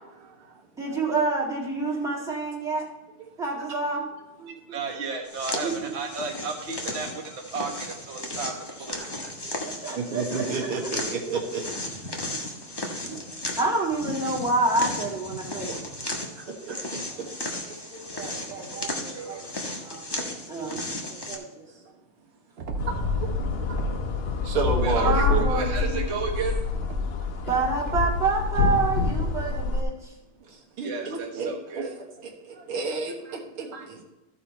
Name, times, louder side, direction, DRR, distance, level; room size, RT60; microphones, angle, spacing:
voice 1, 0.2-0.6 0.9-1.0 3.6-3.7 8.3-8.4 9.0-12.4 12.9-13.3 15.4-15.8 16.1-17.7 18.2-19.4 19.7-20.4 22.9-23.3 23.7-23.8 24.4-25.4 30.4-34.0, right 4 dB, 80° right, -1 dB, 2.4 m, -33 dB
voice 2, 0.8-2.8 3.4-4.0 4.4-4.5 5.6-5.7 9.6-10.4 13.0-13.2 13.6-15.8 17.7-19.5 19.8-20.1 20.5-20.8 21.1-21.6 25.0-26.0 27.5-30.1, right 3 dB, ahead, -3 dB, 1.7 m, -28 dB
voice 3, 4.7-9.0 18.7-18.8 19.1-19.4 24.8-26.6 30.8-31.9, right 4 dB, 35° right, 0 dB, 1.4 m, -33 dB
sound 1, 5.2-21.4, left 1 dB, 20° left, 0.7 m, -35 dB
sound 2, 22.6-24.2 24.5-27.3, equal, 60° right, 0.6 m, -35 dB
sound 3, 22.8-29.8, left 4 dB, 85° left, 0.5 m, -27 dB
14.0 x 5.0 x 4.3 m, 1.1 s
omnidirectional pair, 2.4 m